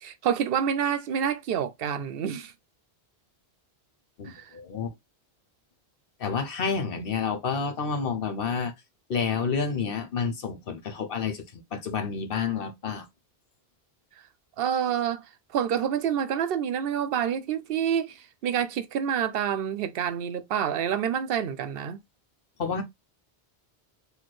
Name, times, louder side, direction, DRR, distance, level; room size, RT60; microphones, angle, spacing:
voice 1, 0.0-2.5 4.3-4.5 7.0-7.1 14.6-15.2 15.5-22.0, right 8 dB, 70° right, 0.7 m, -28 dB
voice 2, 4.2-4.9 6.2-8.7 9.1-13.1 22.6-22.8, left 5 dB, 65° left, 1.0 m, -29 dB
4.2 x 2.7 x 3.0 m
omnidirectional pair, 1.0 m